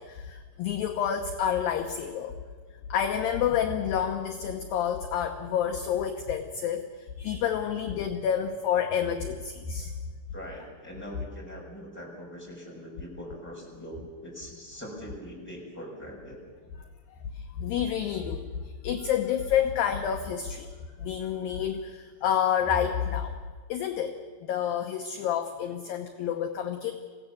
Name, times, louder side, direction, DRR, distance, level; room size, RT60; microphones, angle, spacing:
voice 1, 0.0-2.4 2.9-9.9 17.3-20.7 21.0-23.4 23.7-26.9, left 8 dB, 75° left, 5 dB, 2.2 m, -29 dB
voice 2, 10.3-16.4, equal, ahead, -3 dB, 5.5 m, -42 dB
26.5 x 16.5 x 7.1 m, 1.5 s
omnidirectional pair, 5.2 m